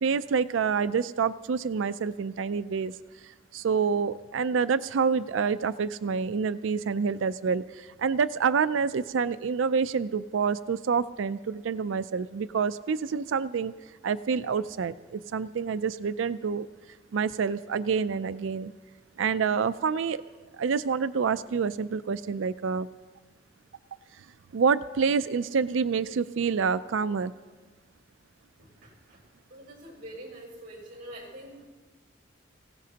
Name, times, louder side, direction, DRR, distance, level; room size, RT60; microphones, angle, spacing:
voice 1, 0.0-2.9 3.2-13.7 14.0-16.7 17.1-18.7 19.2-20.2 20.6-22.9 24.5-27.3, right 5 dB, 85° right, 14 dB, 0.4 m, -27 dB
voice 2, 28.6-29.2 29.5-31.7, right 1 dB, 50° right, -1 dB, 5.8 m, -45 dB
27.5 x 16.5 x 2.9 m, 1.4 s
head